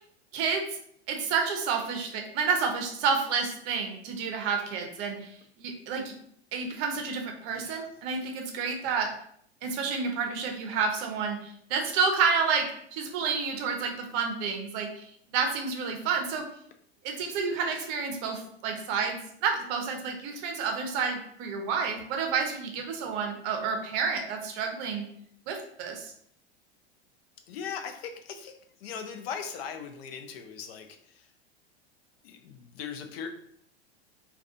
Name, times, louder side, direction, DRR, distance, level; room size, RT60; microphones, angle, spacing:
voice 1, 0.3-0.6 1.1-6.1 6.5-9.1 9.6-15.1 15.3-16.5 17.0-25.1 25.5-26.1, right 5 dB, 45° right, 4 dB, 0.6 m, -30 dB
voice 2, 27.5-28.5 28.8-30.9 32.2-33.3, left 7 dB, 65° left, 6 dB, 0.5 m, -39 dB
2.4 x 2.3 x 2.5 m, 0.66 s
hypercardioid pair, 95°, 32 cm